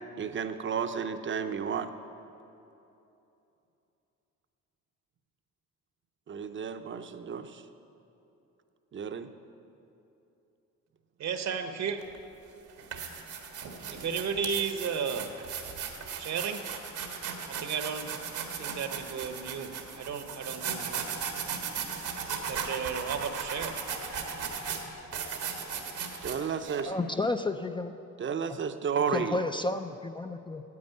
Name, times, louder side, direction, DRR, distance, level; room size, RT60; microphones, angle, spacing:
voice 1, 0.2-1.9 6.3-7.6 8.9-9.3 26.2-26.9 28.2-29.4, right 6 dB, 40° right, 9 dB, 0.7 m, -32 dB
voice 2, 11.2-12.0 13.9-15.3 16.2-16.6 17.5-18.1 18.6-21.1 22.5-23.8, right 6 dB, 60° right, 8 dB, 1.1 m, -34 dB
sound 1, 12.0-12.2 12.7-26.8, right 6 dB, 80° right, 1.5 m, -37 dB
voice 3, 26.8-27.9 29.1-30.6, left 2 dB, 15° left, 7 dB, 0.4 m, -31 dB
9.6 x 8.4 x 9.2 m, 2.9 s
cardioid pair, 90°, 30 cm